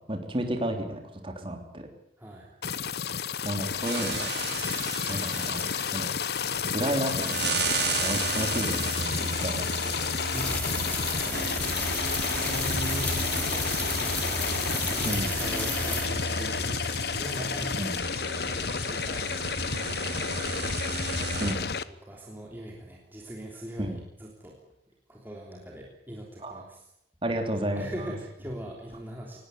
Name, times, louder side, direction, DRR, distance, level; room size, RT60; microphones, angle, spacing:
voice 1, 0.1-1.9 3.4-4.3 5.1-6.1 6.6-9.9 10.9-11.6 15.0-15.3 17.7-17.9 21.4-21.6 23.8-24.0 26.4-26.6 27.2-28.1, right 1 dB, 30° right, 5 dB, 3.3 m, -32 dB
voice 2, 2.2-2.5 10.3-10.9 11.8-17.8 18.2-24.6 25.1-26.8 27.7-29.4, equal, 10° right, -1 dB, 3.3 m, -42 dB
sound 1, 2.6-21.8, left 6 dB, 60° left, 0.9 m, -31 dB
sound 2, 3.8-21.5, right 4 dB, 70° right, 4.2 m, -34 dB
sound 3, 10.3-16.1, left 1 dB, 10° left, 3.4 m, -34 dB
20.0 x 18.0 x 9.4 m, 0.81 s
head